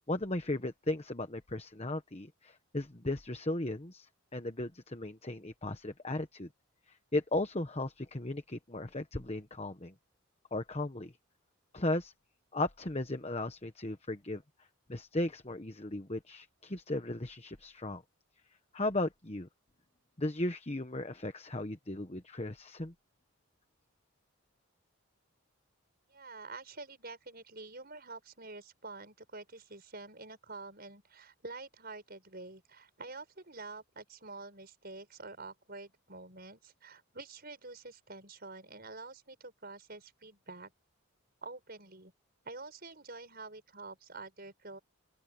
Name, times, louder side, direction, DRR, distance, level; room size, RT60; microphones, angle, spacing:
voice 1, 0.1-6.5 6.9-9.9 10.5-11.1 11.7-12.1 12.5-14.4 14.9-18.0 18.7-19.5 20.2-22.9, left 2 dB, 30° left, 1.1 m, -36 dB
voice 2, 26.1-40.7 41.4-42.1 42.4-44.8, right 3 dB, 45° right, 6.2 m, -47 dB
open air
head